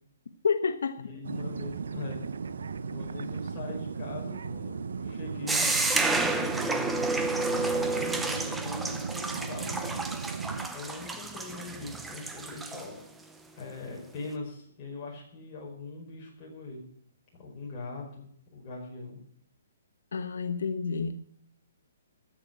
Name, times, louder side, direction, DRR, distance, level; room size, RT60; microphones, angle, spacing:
voice 1, 0.4-1.0 20.1-21.1, left 5 dB, 80° left, 8 dB, 1.0 m, -29 dB
voice 2, 1.0-2.2 2.9-5.7 6.4-7.0 7.5-10.0 10.7-13.1 13.5-16.9 17.4-19.2, left 3 dB, 20° left, -3 dB, 5.0 m, -41 dB
sound 1, 1.2-10.7, right 5 dB, 75° right, 0.8 m, -36 dB
sound 2, 5.5-12.9, right 3 dB, 5° right, 0.6 m, -30 dB
14.5 x 6.5 x 8.9 m, 0.65 s
hypercardioid pair, 170°, 0 cm